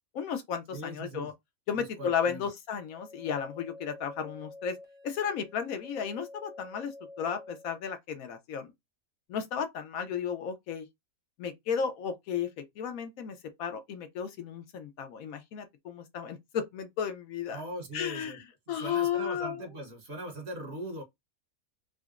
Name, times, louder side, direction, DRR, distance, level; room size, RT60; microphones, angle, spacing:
voice 1, 0.1-1.3 1.7-4.8 5.0-8.7 9.3-10.9 11.4-17.6 17.9-18.3 18.7-19.6, left 7 dB, 80° left, 1.1 m, -34 dB
voice 2, 0.7-1.3 1.7-2.5 17.5-18.4 18.7-21.0, right 1 dB, 50° right, 1.3 m, -40 dB
sound 1, 2.9-7.8, left 2 dB, 30° left, 0.7 m, -48 dB
3.8 x 2.1 x 2.4 m
omnidirectional pair, 1.5 m